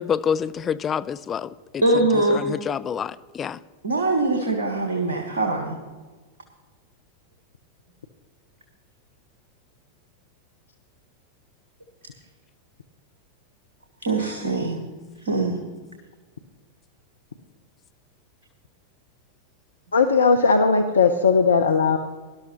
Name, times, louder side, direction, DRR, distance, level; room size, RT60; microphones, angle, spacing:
voice 1, 0.0-3.6, left 7 dB, 25° left, 0.4 m, -28 dB
voice 2, 1.8-2.5 3.8-5.8 14.0-14.8 15.2-15.6, right 2 dB, 70° right, 1.5 m, -22 dB
voice 3, 19.9-22.0, left 5 dB, 70° left, 0.6 m, -18 dB
18.5 x 11.5 x 3.0 m
figure-of-eight pair, 90°, 0 cm